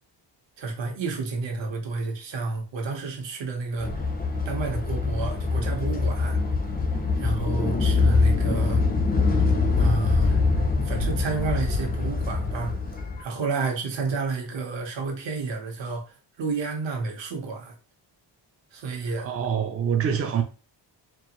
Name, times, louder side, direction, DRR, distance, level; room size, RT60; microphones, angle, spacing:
voice 1, 0.6-4.0 4.4-6.4 7.2-8.8 9.8-10.4 10.8-12.8 13.2-17.7 18.7-19.3, right 4 dB, 75° right, 1.2 m, -30 dB
sound 1, 3.8-13.2, left 3 dB, 20° left, 0.5 m, -24 dB
voice 2, 19.2-20.4, right 7 dB, 35° right, 0.4 m, -25 dB
4.4 x 2.4 x 3.0 m
wide cardioid pair, 180°, 44 cm